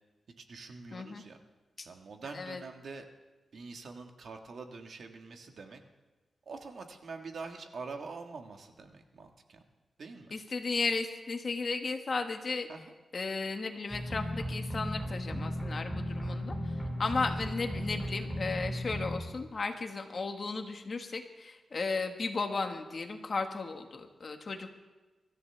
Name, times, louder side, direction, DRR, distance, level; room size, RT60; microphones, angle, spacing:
voice 1, 0.4-1.4 1.8-3.0 3.5-5.8 6.4-9.6 10.0-10.3 12.7-12.9, right 4 dB, 65° right, 4 dB, 1.6 m, -45 dB
voice 2, 0.9-1.2 1.8-1.9 2.3-2.6 10.3-12.7 13.1-24.8, left 4 dB, 45° left, 5 dB, 1.5 m, -35 dB
sound 1, 13.9-19.2, equal, 5° right, 2.2 m, -35 dB
24.0 x 13.5 x 3.4 m, 1.2 s
wide cardioid pair, 105°, 0 cm